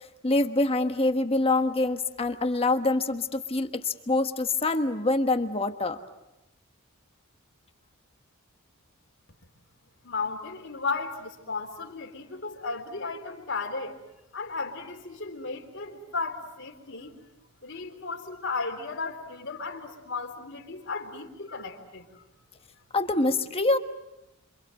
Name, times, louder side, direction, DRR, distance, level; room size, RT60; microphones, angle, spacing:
voice 1, 0.2-6.0 22.9-23.8, left 2 dB, 25° left, 7 dB, 1.3 m, -25 dB
voice 2, 10.0-14.0 14.3-17.2 17.6-22.2, left 4 dB, 55° left, 3 dB, 3.7 m, -35 dB
27.5 x 26.5 x 7.8 m, 0.94 s
head